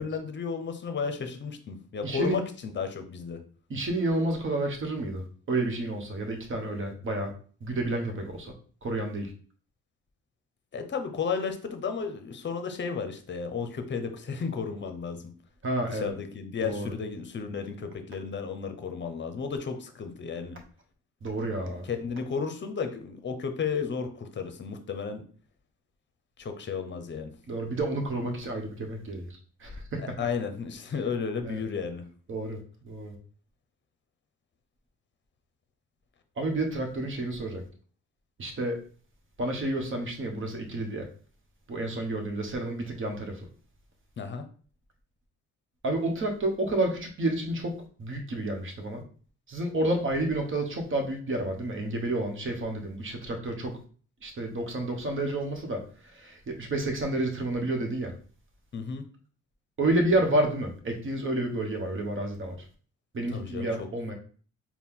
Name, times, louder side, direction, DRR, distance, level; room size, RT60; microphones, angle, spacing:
voice 1, 0.0-3.4 10.7-15.3 15.9-20.6 21.7-25.2 26.4-27.3 30.2-32.0 44.2-44.4 58.7-59.0 63.3-63.9, left 5 dB, 40° left, 7 dB, 0.7 m, -33 dB
voice 2, 2.0-2.4 3.7-5.2 5.5-7.3 7.6-8.5 8.8-9.3 15.6-16.1 16.6-16.9 21.2-21.8 27.5-29.3 29.6-30.1 31.5-31.6 32.3-33.1 36.4-37.6 38.4-38.8 39.4-41.1 41.7-43.4 45.8-49.0 49.5-53.8 54.2-58.1 59.8-62.6 63.1-64.1, right 1 dB, 40° right, 3 dB, 1.1 m, -30 dB
4.3 x 2.3 x 3.6 m, 0.42 s
cardioid pair, 90°, 30 cm